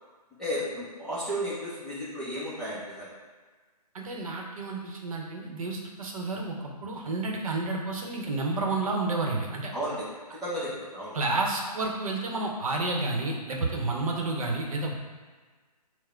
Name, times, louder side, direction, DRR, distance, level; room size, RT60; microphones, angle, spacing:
voice 1, 0.4-3.1 9.7-10.0 10.4-11.2, equal, 5° left, -12 dB, 0.5 m, -33 dB
voice 2, 3.9-6.6 6.8-9.7 11.1-14.9, right 3 dB, 55° right, 0 dB, 0.9 m, -30 dB
4.7 x 2.1 x 4.3 m, 1.4 s
figure-of-eight pair, 150°, 21 cm